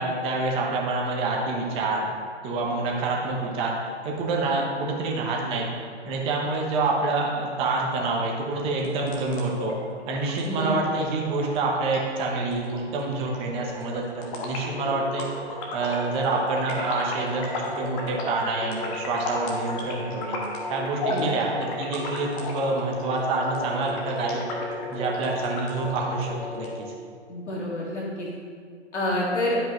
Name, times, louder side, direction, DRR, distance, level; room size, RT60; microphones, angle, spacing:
voice 1, 0.0-2.1 2.4-3.7 4.0-5.7 6.1-9.7 10.1-15.3 15.7-17.5 17.8-20.4 20.7-24.4 24.9-26.9, right 3 dB, 15° right, -1 dB, 0.8 m, -27 dB
sound 1, 8.7-26.7, left 1 dB, 30° left, 1.3 m, -34 dB
voice 2, 10.4-10.8 21.1-21.3 27.3-28.3 28.9-29.6, left 1 dB, 75° left, -4 dB, 1.9 m, -28 dB
11.5 x 5.2 x 2.9 m, 2.1 s
hypercardioid pair, 140°, 35 cm